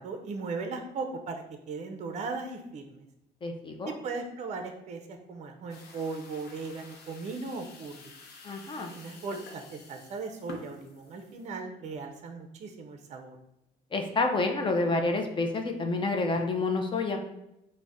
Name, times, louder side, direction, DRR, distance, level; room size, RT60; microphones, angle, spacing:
voice 1, 0.0-3.1 4.0-8.1 8.9-13.4, right 4 dB, 45° right, 5 dB, 0.5 m, -38 dB
voice 2, 3.4-3.9 8.4-8.9 13.9-17.2, left 3 dB, 30° left, 4 dB, 0.5 m, -28 dB
sound 1, 5.7-11.5, left 3 dB, 70° left, 0.6 m, -49 dB
3.8 x 2.1 x 3.4 m, 0.83 s
cardioid pair, 110°, 17 cm